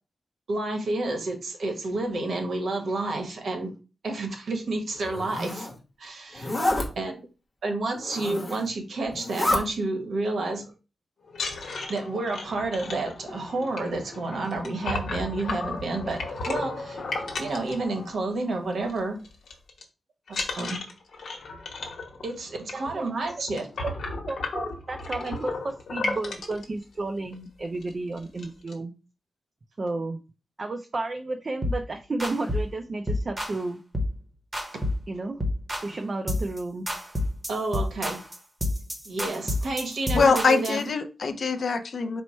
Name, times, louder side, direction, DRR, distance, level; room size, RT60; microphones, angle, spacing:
voice 1, 0.5-3.7 4.0-5.7 6.0-6.6 6.9-7.2 7.6-10.7 11.6-17.0 17.4-19.2 20.6-20.9 22.2-23.7 37.5-38.2 39.0-40.8, right 2 dB, 65° right, 4 dB, 1.0 m, -30 dB
Zipper (clothing), 5.0-5.7 6.3-6.9 8.0-8.7 9.1-9.6, left 1 dB, 15° left, 1.0 m, -28 dB
sound 1, 11.3-18.4 18.7-19.0 19.2-19.8 20.3-26.6 27.3-27.4 27.7-27.9 28.2-28.7, left 3 dB, 85° left, 1.1 m, -34 dB
voice 2, 22.7-23.1 23.8-23.9 24.3-28.9 29.8-30.2 30.6-33.8 35.1-35.4 35.8-36.9, right 2 dB, 35° right, 4 dB, 0.4 m, -32 dB
sound 2, 31.6-31.8 32.2-32.7 33.1-33.6 33.9-34.2 34.5-35.1 35.4-35.9 36.3-36.6 36.9-40.8, left 1 dB, 20° right, 0.8 m, -29 dB
voice 3, 40.1-42.2, left 4 dB, 55° left, 8 dB, 0.5 m, -23 dB
4.5 x 2.1 x 4.2 m, 0.32 s
wide cardioid pair, 150°, 0 cm